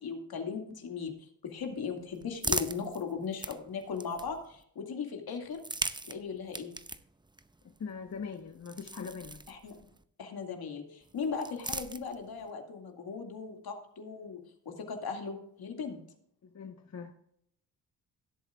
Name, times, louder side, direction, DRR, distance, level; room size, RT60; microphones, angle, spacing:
voice 1, 0.0-5.6 6.0-6.7 9.5-9.9 10.2-14.4 14.7-16.0, left 5 dB, 65° left, 3 dB, 2.3 m, -38 dB
sound 1, 1.6-4.6 5.4-10.0 11.0-12.5, right 2 dB, 10° right, 0.7 m, -40 dB
voice 2, 7.8-9.4 16.4-17.1, left 5 dB, 40° left, 4 dB, 1.2 m, -41 dB
17.5 x 8.0 x 2.4 m, 0.70 s
supercardioid pair, 55°, 40 cm